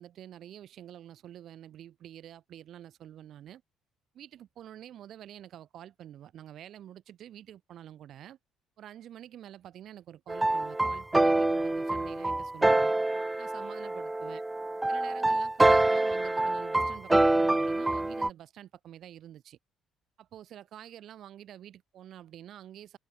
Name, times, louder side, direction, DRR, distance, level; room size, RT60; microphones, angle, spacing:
voice 1, 0.0-3.6 4.1-8.4 8.8-12.9 13.4-14.4 14.9-19.6 20.2-23.0, right 11 dB, 50° right, 3.6 m, -48 dB
sound 1, 10.3-18.3, right 2 dB, 10° right, 0.4 m, -26 dB
cardioid pair, 160°, 0 cm